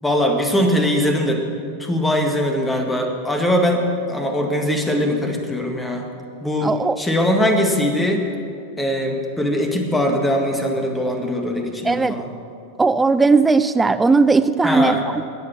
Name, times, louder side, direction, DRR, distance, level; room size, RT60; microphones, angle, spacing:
voice 1, 0.0-1.4 1.8-6.1 6.4-8.2 8.8-12.3 14.6-15.0, left 1 dB, 10° left, 3 dB, 1.8 m, -21 dB
voice 2, 6.6-7.0 11.8-12.2 12.8-15.0, right 4 dB, 10° right, 12 dB, 0.5 m, -17 dB
14.0 x 9.5 x 7.3 m, 2.4 s
figure-of-eight pair, 90°, 0 cm